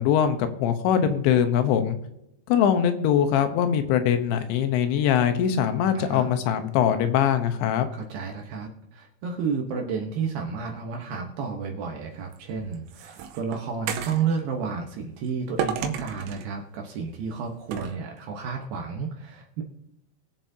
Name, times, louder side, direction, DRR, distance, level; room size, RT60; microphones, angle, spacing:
voice 1, 0.0-2.0 2.5-7.9, left 9 dB, 85° left, 8 dB, 3.2 m, -22 dB
voice 2, 5.9-6.3 7.9-19.6, right 5 dB, 70° right, 2 dB, 2.4 m, -31 dB
sound 1, 12.3-14.3 15.6-16.5 17.7-18.0, right 8 dB, 85° right, 3.1 m, -32 dB
21.5 x 7.4 x 2.7 m, 0.80 s
omnidirectional pair, 5.2 m